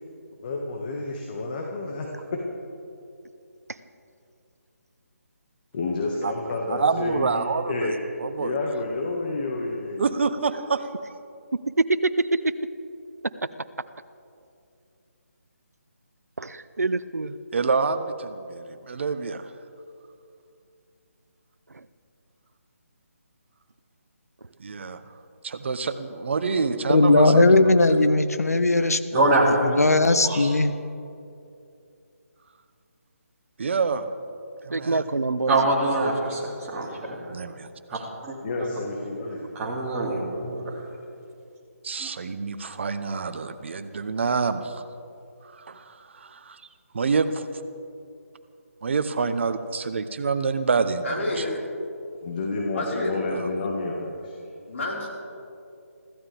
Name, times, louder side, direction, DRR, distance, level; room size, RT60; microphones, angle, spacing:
voice 1, 0.4-2.4 5.7-8.0 8.4-10.0 38.4-39.4 52.2-54.3, left 3 dB, 35° left, 0 dB, 1.8 m, -30 dB
voice 2, 6.7-7.9 8.2-8.5 10.0-10.9 17.5-19.5 24.6-25.0 25.4-28.0 33.6-34.1 34.6-35.1 37.3-38.0 41.8-44.9 45.4-46.6 46.9-47.4 48.8-51.5 53.3-53.5, right 4 dB, 50° right, 10 dB, 1.1 m, -27 dB
voice 3, 12.0-12.4 16.4-17.4 21.7-21.8 34.7-35.6, right 3 dB, 85° right, 13 dB, 0.7 m, -26 dB
voice 4, 26.9-29.0 29.7-30.7, left 2 dB, 80° left, 11 dB, 0.9 m, -18 dB
voice 5, 29.1-29.7 30.2-30.5 35.5-37.2 37.9-38.7 39.5-40.8 42.0-42.1, right 2 dB, 15° right, -5 dB, 2.8 m, -25 dB
voice 6, 51.0-51.7 52.7-53.1 54.7-55.1, left 2 dB, 55° left, -4 dB, 5.1 m, -29 dB
25.0 x 15.0 x 3.6 m, 2.6 s
figure-of-eight pair, 155°, 8 cm